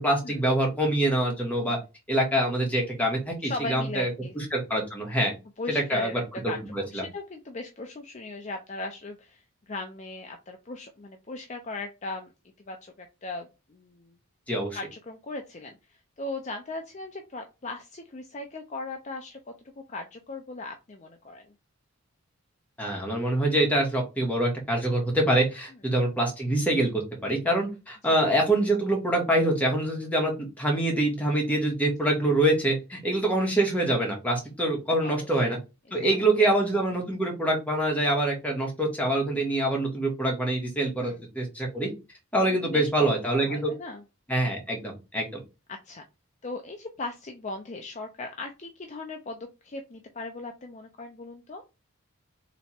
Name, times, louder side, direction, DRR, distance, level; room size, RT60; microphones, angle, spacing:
voice 1, 0.0-1.8 2.1-4.1 4.4-5.3 5.7-6.1 6.4-7.0 14.5-14.8 22.8-35.6 35.9-41.9 42.3-43.7 44.3-45.3, right 1 dB, 5° left, -1 dB, 1.3 m, -25 dB
voice 2, 3.4-4.4 5.6-12.3 12.6-14.1 14.7-19.4 19.9-21.4 28.0-28.2 35.0-35.5 35.9-36.2 41.0-41.2 42.4-44.0 45.7-46.0 46.4-51.6, left 2 dB, 30° left, 4 dB, 0.5 m, -38 dB
3.3 x 3.0 x 4.3 m, 0.27 s
head